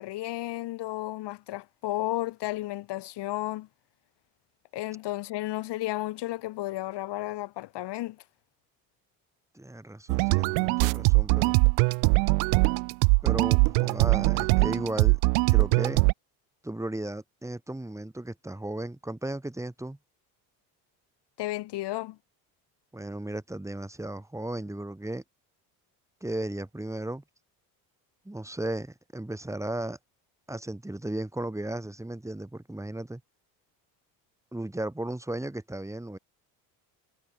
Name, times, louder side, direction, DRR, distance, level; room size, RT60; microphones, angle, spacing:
voice 1, 0.0-3.7 4.7-8.2 21.4-22.2, left 16 dB, 65° left, 3.3 m, -33 dB
voice 2, 9.5-11.6 13.2-15.2 15.5-16.0 16.6-20.0 22.9-25.2 26.2-27.2 28.2-30.0 30.5-33.2 34.5-36.2, right 1 dB, 5° right, 4.8 m, -35 dB
sound 1, 10.1-16.1, right 40 dB or more, 80° right, 0.5 m, -22 dB
supercardioid pair, 90°, 44 cm